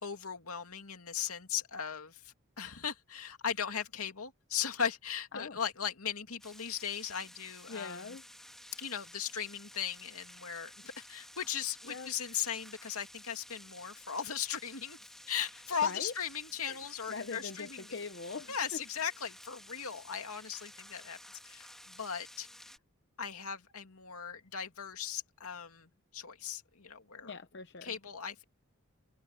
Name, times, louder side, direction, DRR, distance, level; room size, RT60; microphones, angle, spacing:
voice 1, 0.0-8.0 8.8-15.0 15.3-17.9 18.5-21.2 21.4-22.5 23.2-27.3 27.8-28.4, left 8 dB, 80° left, 2.6 m, -38 dB
sound 1, 6.4-22.8, left 1 dB, ahead, 2.9 m, -53 dB
voice 2, 7.7-8.2 11.9-12.1 15.8-16.1 16.6-16.8 17.1-18.8 27.2-27.9, left 4 dB, 50° left, 0.8 m, -42 dB
head